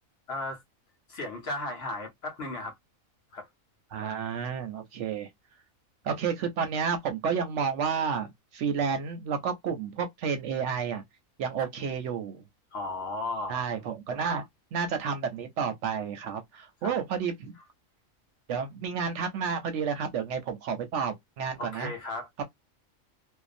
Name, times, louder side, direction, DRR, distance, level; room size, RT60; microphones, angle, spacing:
voice 1, 0.3-0.6 1.1-2.7 3.3-3.5 12.7-13.7 16.8-16.9 21.6-22.4, left 2 dB, 55° left, 1.0 m, -35 dB
voice 2, 3.9-5.3 6.0-11.0 11.4-12.4 13.5-14.4 14.7-17.5 18.5-21.9, right 6 dB, 65° right, 0.8 m, -31 dB
2.6 x 2.1 x 2.4 m
omnidirectional pair, 1.4 m